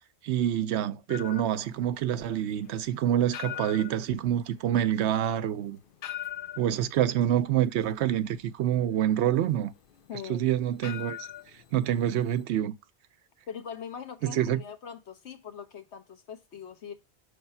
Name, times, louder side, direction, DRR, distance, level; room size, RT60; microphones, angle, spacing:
voice 1, 0.2-5.8 6.6-9.7 10.3-11.2 11.7-12.7 14.2-14.6, right 11 dB, 85° right, 0.9 m, -27 dB
sound 1, 1.1-12.4, left 12 dB, 60° left, 0.7 m, -43 dB
voice 2, 10.1-10.5 13.5-16.9, left 7 dB, 90° left, 1.3 m, -41 dB
5.7 x 3.4 x 5.4 m
omnidirectional pair, 1.1 m